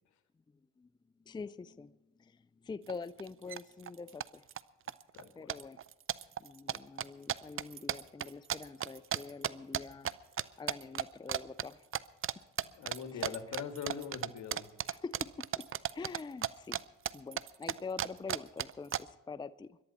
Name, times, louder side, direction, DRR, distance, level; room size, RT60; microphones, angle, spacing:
voice 1, 1.3-4.5 5.3-5.8 6.4-10.1 10.6-11.9 13.1-13.3 14.9-15.7 15.9-16.8 17.1-19.8, left 4 dB, 15° left, 16 dB, 0.5 m, -45 dB
sound 1, 2.9-3.0 3.2-3.6 3.9-4.6 4.9-5.2 5.5-10.1 10.4-11.0 11.3-11.7 11.9-12.3 12.6-16.8 17.1-19.0, right 10 dB, 45° right, 0.6 m, -34 dB
voice 2, 5.1-5.6 12.7-14.7, left 7 dB, 70° left, 8 dB, 2.0 m, -42 dB
22.0 x 12.0 x 4.2 m, 1.0 s
cardioid pair, 90°, 30 cm